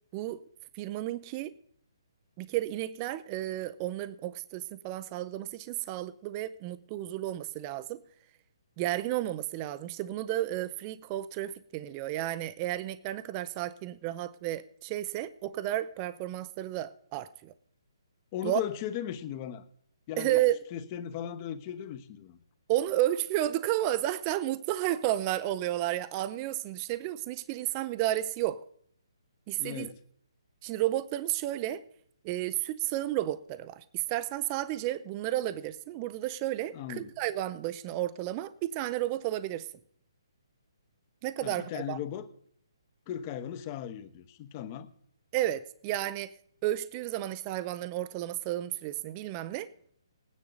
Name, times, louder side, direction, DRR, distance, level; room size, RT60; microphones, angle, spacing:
voice 1, 0.7-1.5 2.4-8.0 8.8-17.5 18.4-18.6 20.2-20.6 22.7-28.6 29.5-29.9 30.6-31.8 32.2-39.7 41.2-42.0 45.3-46.3 46.6-49.7, right 14 dB, 25° right, 0.5 m, -32 dB
voice 2, 18.3-19.6 20.1-20.4 20.7-22.4 29.6-30.0 36.7-37.1 41.4-42.3 43.1-44.9, left 10 dB, 30° left, 0.9 m, -37 dB
18.0 x 9.6 x 4.0 m
hypercardioid pair, 150°, 3 cm